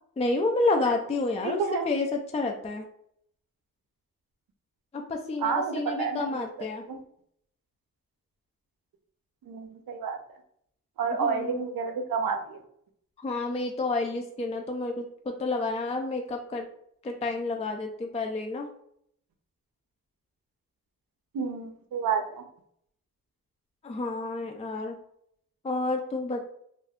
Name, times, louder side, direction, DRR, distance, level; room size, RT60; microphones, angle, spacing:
voice 1, 0.2-2.9 4.9-6.9 11.2-11.6 13.2-16.7 17.0-18.7 23.8-25.0 25.6-26.5, left 3 dB, 20° left, 3 dB, 0.4 m, -30 dB
voice 2, 1.4-1.9 5.4-6.5 6.9-7.0 9.5-10.2 11.0-12.6 21.3-22.4, right 5 dB, 80° right, 5 dB, 0.6 m, -29 dB
2.5 x 2.3 x 3.4 m, 0.68 s
cardioid pair, 75°, 34 cm